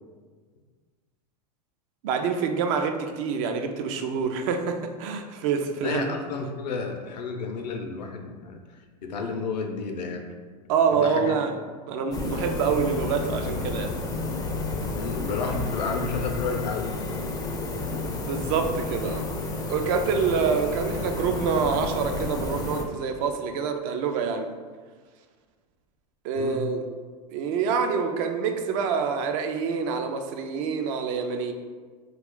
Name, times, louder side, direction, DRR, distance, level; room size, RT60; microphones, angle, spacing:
voice 1, 2.0-6.2 10.7-11.6 11.9-14.0 18.3-19.2 19.7-24.5 26.2-26.8 27.3-31.5, right 5 dB, 50° right, 5 dB, 0.4 m, -26 dB
voice 2, 5.8-10.2 10.9-11.3 14.9-16.9 26.4-26.6, left 4 dB, 80° left, 3 dB, 0.5 m, -31 dB
sound 1, 12.1-22.8, left 3 dB, 20° left, 0.3 m, -31 dB
2.4 x 2.3 x 3.5 m, 1.5 s
hypercardioid pair, 105°, 21 cm